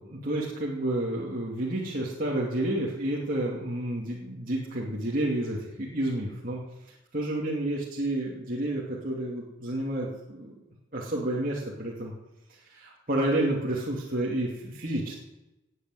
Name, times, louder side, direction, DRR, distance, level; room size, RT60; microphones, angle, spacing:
voice 1, 0.1-6.6 7.1-10.6 10.9-12.1 12.6-15.1, right 1 dB, 45° right, -4 dB, 2.7 m, -30 dB
19.0 x 8.7 x 8.1 m, 1.0 s
head